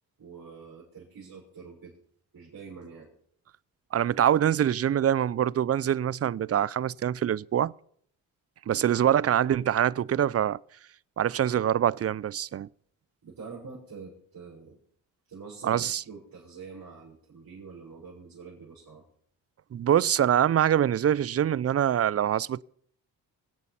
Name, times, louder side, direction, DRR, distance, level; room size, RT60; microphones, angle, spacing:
voice 1, 0.2-2.0 2.3-3.1 13.2-14.8 15.3-19.0, right 5 dB, 50° right, 6.2 m, -45 dB
voice 2, 3.9-7.7 8.7-10.6 11.2-12.7 15.6-16.0 19.7-22.6, right 10 dB, 35° right, 0.5 m, -24 dB
25.0 x 8.3 x 5.9 m
supercardioid pair, 55°, 42 cm